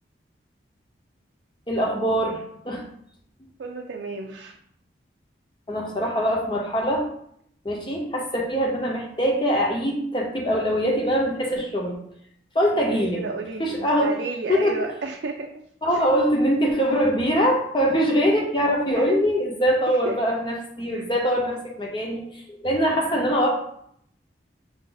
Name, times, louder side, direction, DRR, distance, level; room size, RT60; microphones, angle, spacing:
voice 1, 1.7-2.4 2.6-2.8 5.7-7.0 7.6-12.0 12.5-13.2 13.6-14.1 14.5-14.8 15.8-23.5, equal, 25° left, 0 dB, 0.8 m, -23 dB
voice 2, 3.6-4.5 12.7-15.5 15.9-16.1 18.9-19.2 19.9-20.2 20.9-21.1, right 4 dB, 75° right, 2 dB, 0.4 m, -33 dB
4.9 x 2.5 x 3.9 m, 0.69 s
head